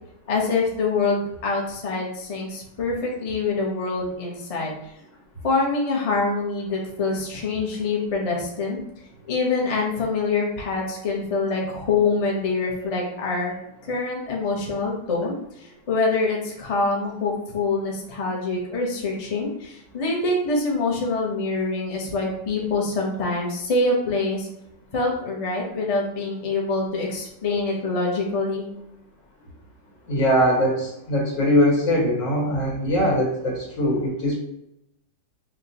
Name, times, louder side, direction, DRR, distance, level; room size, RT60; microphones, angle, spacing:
voice 1, 0.3-4.8 5.4-8.8 9.3-13.5 13.8-24.5 24.9-28.7, left 3 dB, 55° left, -2 dB, 0.4 m, -25 dB
voice 2, 30.1-34.4, equal, 85° left, -4 dB, 2.2 m, -21 dB
5.7 x 2.2 x 2.8 m, 0.81 s
omnidirectional pair, 2.0 m